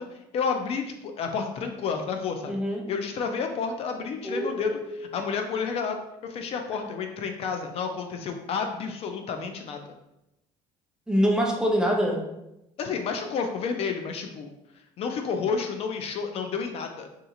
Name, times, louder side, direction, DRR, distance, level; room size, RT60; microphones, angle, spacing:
voice 1, 0.0-2.5 2.9-9.8 12.8-14.5 15.0-17.1, left 5 dB, 50° left, 5 dB, 0.4 m, -30 dB
voice 2, 2.5-2.9 4.2-5.0 11.1-12.2, equal, 5° right, 0 dB, 0.5 m, -25 dB
2.8 x 2.4 x 3.7 m, 0.88 s
cardioid pair, 125°, 13 cm